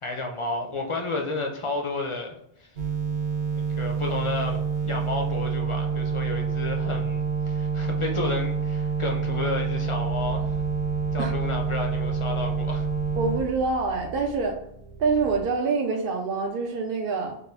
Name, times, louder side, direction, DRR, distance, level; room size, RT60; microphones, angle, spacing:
voice 1, 0.0-2.7 3.5-10.6 11.1-12.9, left 2 dB, 45° left, 2 dB, 0.4 m, -31 dB
sound 1, 2.8-13.4, right 5 dB, 85° right, 1.0 m, -27 dB
sound 2, 10.1-15.4, right 4 dB, 20° right, 0.6 m, -42 dB
voice 2, 13.2-14.6 15.0-17.4, right 4 dB, 65° right, 1 dB, 0.7 m, -26 dB
2.9 x 2.3 x 3.3 m, 0.74 s
omnidirectional pair, 1.1 m